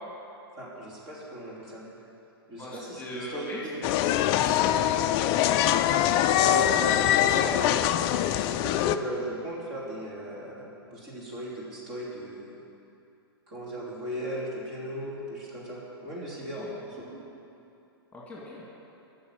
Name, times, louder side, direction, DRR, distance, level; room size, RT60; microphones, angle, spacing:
voice 1, 0.6-1.8 2.5-3.8 6.3-7.8 8.5-12.6 13.5-17.2, right 1 dB, 40° right, -5 dB, 3.0 m, -37 dB
voice 2, 2.6-3.6 4.2-4.9 16.5-16.7 18.1-18.6, left 1 dB, 10° left, -5 dB, 2.2 m, -40 dB
sound 1, 3.8-9.0, left 12 dB, 30° left, 0.4 m, -23 dB
9.5 x 6.7 x 8.8 m, 2.8 s
figure-of-eight pair, 110°, 13 cm